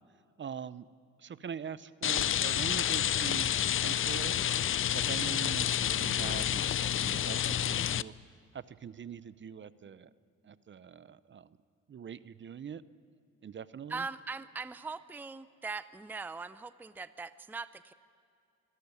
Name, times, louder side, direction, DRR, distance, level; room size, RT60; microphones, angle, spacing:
voice 1, 0.4-0.9 1.2-8.1 8.5-10.1 10.4-11.6 11.9-12.8 13.4-14.1, right 7 dB, 40° right, 16 dB, 0.7 m, -43 dB
Rain, 2.0-8.0, left 10 dB, 45° left, 0.5 m, -29 dB
voice 2, 13.9-17.9, right 4 dB, 5° right, 14 dB, 0.5 m, -41 dB
24.5 x 13.0 x 9.5 m, 2.6 s
cardioid pair, 90°, 30 cm